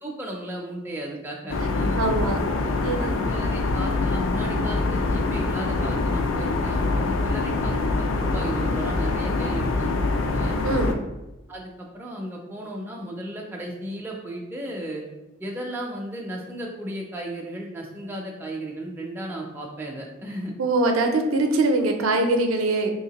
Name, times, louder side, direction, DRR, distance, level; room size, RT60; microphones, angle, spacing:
voice 1, 0.0-2.0 3.0-9.9 10.2-10.6 11.5-15.0 15.4-20.5, right 1 dB, 10° right, -1 dB, 0.3 m, -35 dB
sound 1, 1.5-10.9, left 3 dB, 65° left, 0.3 m, -24 dB
voice 2, 2.0-2.4 2.8-3.1 10.6-11.0 20.6-22.9, right 2 dB, 75° right, 4 dB, 0.4 m, -22 dB
3.2 x 2.8 x 2.8 m, 1.0 s
head